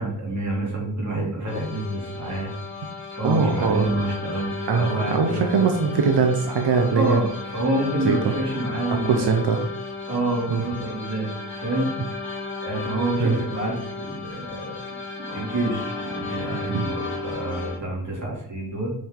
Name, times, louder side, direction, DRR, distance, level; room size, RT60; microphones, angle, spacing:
voice 1, 0.0-2.5 3.1-5.7 6.9-9.4 10.1-11.9 12.6-14.8 15.2-18.9, right 2 dB, 45° right, -3 dB, 2.8 m, -28 dB
sound 1, 1.4-17.8, left 3 dB, 30° left, 2.4 m, -34 dB
voice 2, 3.2-3.9 4.7-7.2 8.0-8.2 8.9-9.7 10.5-10.6 13.2-13.4 16.7-16.9, right 5 dB, 90° right, 3 dB, 0.9 m, -21 dB
7.5 x 5.2 x 3.8 m, 0.73 s
wide cardioid pair, 175°, 39 cm